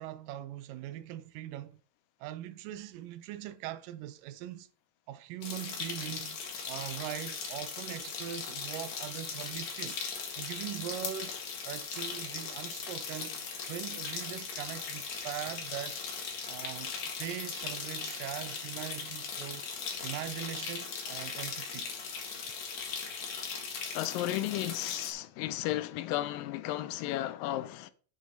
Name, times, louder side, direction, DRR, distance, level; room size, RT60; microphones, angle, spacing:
voice 1, 0.0-1.8 2.2-4.7 5.1-6.4 6.7-10.0 10.4-11.4 11.6-16.0 16.5-19.6 20.0-21.9, right 12 dB, 80° right, 2.2 m, -41 dB
sound 1, 5.4-25.1, left 5 dB, 55° left, 2.6 m, -39 dB
voice 2, 23.9-27.9, left 14 dB, 85° left, 2.3 m, -34 dB
7.4 x 6.6 x 4.1 m
omnidirectional pair, 3.9 m